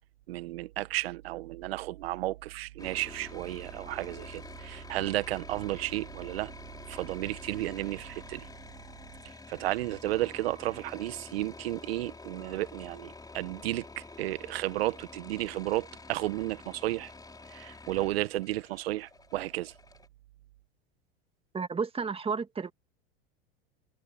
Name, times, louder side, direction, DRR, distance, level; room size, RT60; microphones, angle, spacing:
voice 1, 0.3-6.5 6.9-8.5 9.2-17.1 17.5-19.7, right 16 dB, 80° right, 1.1 m, -33 dB
sound 1, 2.8-20.1, left 3 dB, 15° left, 4.9 m, -48 dB
voice 2, 21.5-22.7, right 5 dB, 20° right, 2.0 m, -32 dB
hypercardioid pair, 100°, 30 cm